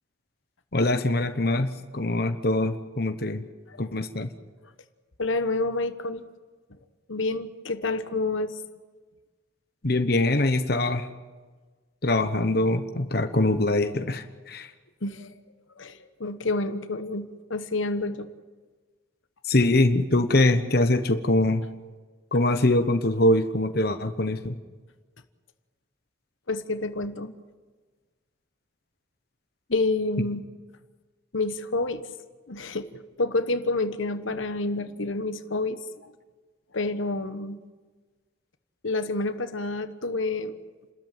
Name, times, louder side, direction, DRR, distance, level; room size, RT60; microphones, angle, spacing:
voice 1, 0.7-1.7 1.9-3.4 3.8-4.3 9.8-11.1 12.0-14.7 19.4-21.6 22.3-24.5, left 2 dB, 50° left, 8 dB, 1.2 m, -23 dB
voice 2, 5.2-6.2 7.1-8.6 15.0-15.3 15.8-18.3 26.5-27.3 29.7-30.4 31.3-32.0 32.5-36.1 36.7-37.6 38.8-40.5, left 2 dB, 75° left, 10 dB, 1.2 m, -28 dB
29.5 x 13.5 x 9.2 m, 1.4 s
head